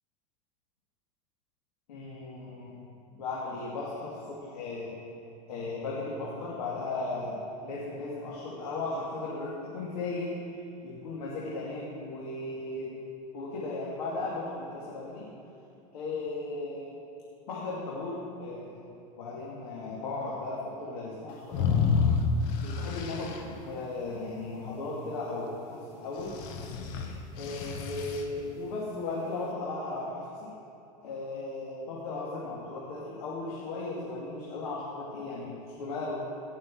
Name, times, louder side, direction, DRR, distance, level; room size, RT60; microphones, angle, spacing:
voice 1, 1.9-5.0 5.5-10.3 10.8-13.0 13.3-15.3 15.9-16.9 17.5-22.0 22.6-23.4 23.6-26.4 27.0-30.5 31.0-36.2, left 3 dB, 90° left, -6 dB, 2.6 m, -36 dB
sound 1, 21.5-23.4 26.2-28.2, left 6 dB, 60° left, 1.4 m, -29 dB
18.0 x 6.4 x 6.2 m, 2.6 s
supercardioid pair, 125°, 19 cm